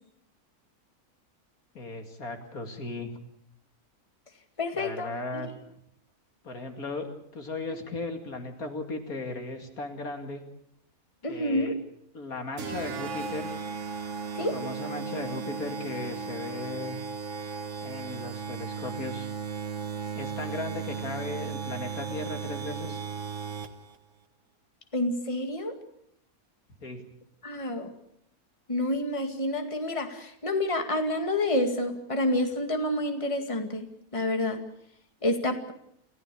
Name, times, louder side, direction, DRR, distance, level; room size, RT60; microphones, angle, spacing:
voice 1, 1.7-3.1 4.7-5.5 6.4-10.4 11.3-11.7 12.1-13.5 14.4-17.0 17.8-19.3 20.1-23.0 26.8-27.0, left 3 dB, 75° left, 6 dB, 2.8 m, -36 dB
voice 2, 4.6-5.4 11.2-11.7 14.3-14.5 24.9-25.7 27.4-27.9 28.7-34.6 35.2-35.7, left 1 dB, 20° left, 5 dB, 2.2 m, -28 dB
sound 1, 12.6-24.0, right 5 dB, 55° right, 1.7 m, -36 dB
27.5 x 15.5 x 8.5 m, 0.74 s
omnidirectional pair, 1.6 m